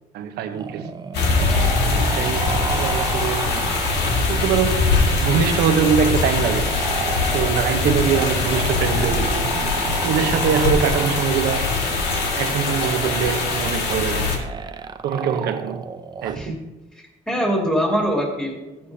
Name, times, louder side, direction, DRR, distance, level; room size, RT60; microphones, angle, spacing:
voice 1, 0.1-0.9 1.8-3.8 4.3-6.7 7.3-9.5 10.0-11.7 12.4-14.5 15.0-15.9 16.2-16.6, right 7 dB, 75° right, 0.9 m, -23 dB
sound 1, 0.5-16.5, right 5 dB, 25° right, 0.6 m, -32 dB
sound 2, 1.1-14.4, left 4 dB, 80° left, 2.0 m, -22 dB
voice 2, 17.0-18.9, equal, 5° left, 2.4 m, -24 dB
14.5 x 8.7 x 2.8 m
cardioid pair, 110°, 17 cm